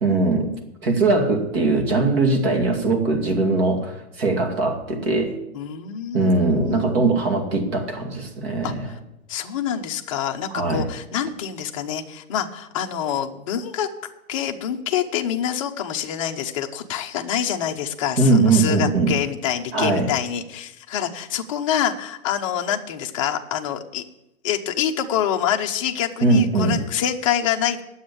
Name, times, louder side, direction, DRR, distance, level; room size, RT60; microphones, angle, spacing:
voice 1, 0.0-0.5 0.8-5.3 6.1-8.9 10.5-10.8 18.2-19.1 19.7-20.1 26.2-26.8, right 3 dB, 40° right, 4 dB, 2.4 m, -20 dB
voice 2, 5.5-6.9 8.6-8.7 9.3-13.9 14.3-24.0 24.4-27.8, left 9 dB, 25° left, 3 dB, 0.7 m, -26 dB
9.6 x 7.9 x 8.4 m, 0.89 s
hypercardioid pair, 155°, 43 cm